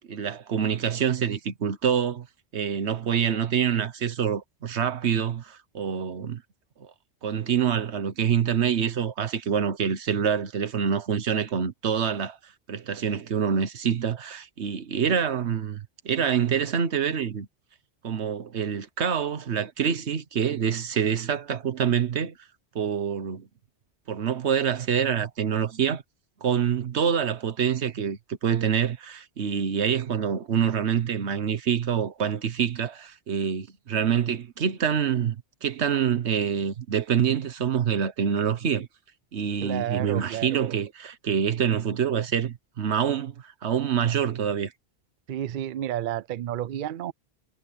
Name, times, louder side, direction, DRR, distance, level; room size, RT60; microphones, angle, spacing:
voice 1, 0.1-2.3 2.5-6.4 7.2-12.4 12.7-17.5 18.0-22.4 22.7-23.5 24.1-26.0 26.4-35.4 35.6-38.9 39.3-44.7, right 8 dB, 75° right, 1.4 m, -26 dB
voice 2, 39.6-40.8 45.3-47.1, right 11 dB, 55° right, 0.6 m, -31 dB
omnidirectional pair, 1.1 m